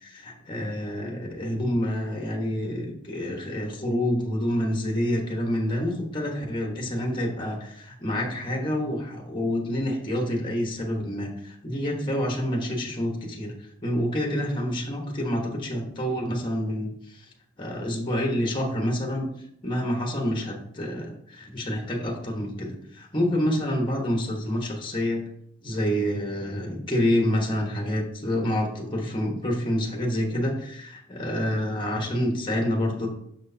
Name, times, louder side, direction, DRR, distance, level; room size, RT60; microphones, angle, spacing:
voice 1, 0.0-13.5 13.8-17.2 17.6-19.3 19.6-25.3 25.6-33.1, equal, 25° left, 0 dB, 1.2 m, -28 dB
6.3 x 6.3 x 2.8 m, 0.72 s
head